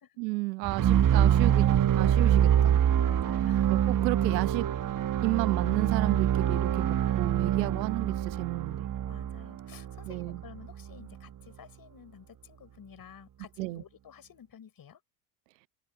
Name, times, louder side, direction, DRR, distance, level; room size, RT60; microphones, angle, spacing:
voice 1, 0.2-1.7 1.9-2.8 3.7-4.7 5.2-8.9 10.1-10.4 13.6-13.8, right 24 dB, 80° right, 1.1 m, -32 dB
sound 1, 0.6-10.7, right 10 dB, 40° right, 1.5 m, -25 dB
voice 2, 2.9-3.7 9.1-15.0, left 8 dB, 45° left, 6.7 m, -52 dB
open air
hypercardioid pair, 70°, 49 cm